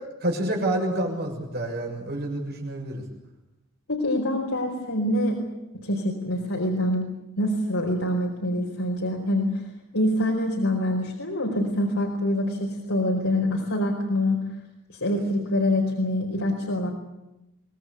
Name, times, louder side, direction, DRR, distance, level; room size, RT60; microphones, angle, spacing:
voice 1, 0.2-3.0, right 1 dB, 50° right, 1 dB, 7.2 m, -28 dB
voice 2, 3.9-5.4 5.8-7.1 7.4-9.6 9.9-14.4 15.0-16.9, left 1 dB, 85° left, -1 dB, 4.8 m, -25 dB
25.0 x 20.0 x 8.4 m, 0.93 s
head